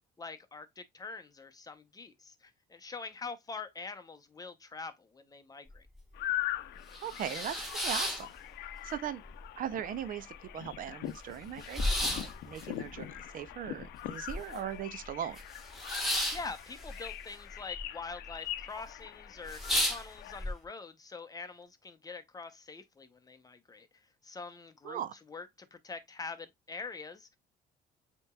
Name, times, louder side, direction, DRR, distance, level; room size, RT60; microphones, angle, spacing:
voice 1, 0.2-5.9 16.3-27.4, left 4 dB, 20° left, 0.8 m, -45 dB
sound 1, 5.7-5.8 6.2-6.3 6.7-8.9 9.3-10.0 10.3-10.4 10.6-14.8 15.0-17.8 18.1-18.6 19.0-19.1 19.4-20.5, left 1 dB, ahead, 1.5 m, -34 dB
sound 2, 6.1-20.5, left 14 dB, 80° left, 0.5 m, -42 dB
voice 2, 7.0-8.3 8.8-9.2 9.6-10.3 10.5-15.4 24.8-25.1, right 10 dB, 55° right, 0.5 m, -39 dB
7.7 x 3.0 x 2.3 m
cardioid pair, 110°, 17 cm